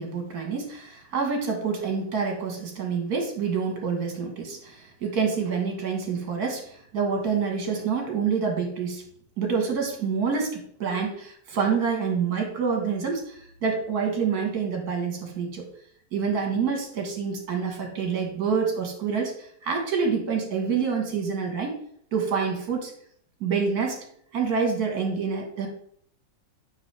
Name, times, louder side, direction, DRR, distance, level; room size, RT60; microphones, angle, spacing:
voice 1, 0.0-9.0 9.4-15.7 16.1-21.7 22.1-22.9 23.4-24.0 24.3-25.7, right 5 dB, 60° right, 2 dB, 1.9 m, -27 dB
7.3 x 5.9 x 3.3 m, 0.65 s
omnidirectional pair, 1.9 m